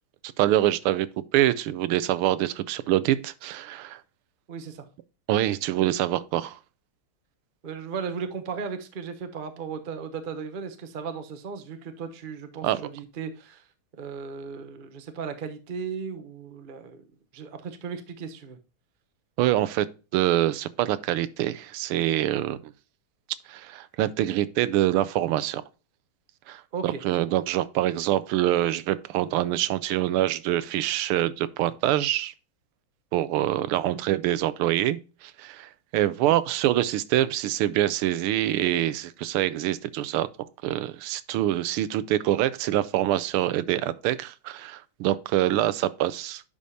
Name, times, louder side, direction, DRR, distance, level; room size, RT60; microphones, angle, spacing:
voice 1, 0.4-1.1 1.3-4.0 5.3-6.6 12.6-12.8 19.4-19.9 20.1-22.6 23.5-25.6 26.5-32.3 33.1-35.0 35.4-40.3 40.6-46.4, right 13 dB, 80° right, 1.5 m, -25 dB
voice 2, 4.5-4.9 7.6-13.6 14.0-17.0 17.3-18.6 26.7-27.0 33.7-34.0 36.2-36.3, right 6 dB, 65° right, 0.5 m, -36 dB
10.5 x 5.0 x 2.7 m
omnidirectional pair, 2.4 m